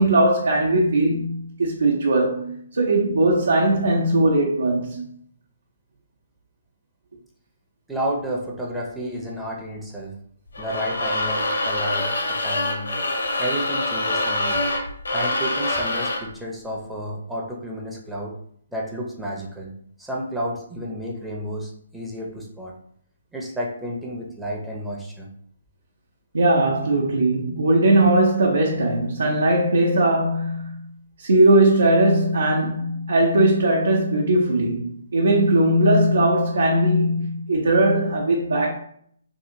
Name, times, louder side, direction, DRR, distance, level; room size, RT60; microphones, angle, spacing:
voice 1, 0.0-5.0 26.3-30.9 31.2-38.7, right 1 dB, 80° right, 0.6 m, -19 dB
voice 2, 7.9-10.1 10.6-12.9 13.4-14.6 15.1-18.4 18.7-19.7 20.0-22.7 23.3-25.3, equal, 5° right, 0.5 m, -31 dB
sound 1, 10.5-16.3, left 2 dB, 80° left, 0.7 m, -25 dB
2.8 x 2.8 x 2.5 m
hypercardioid pair, 145°, 0 cm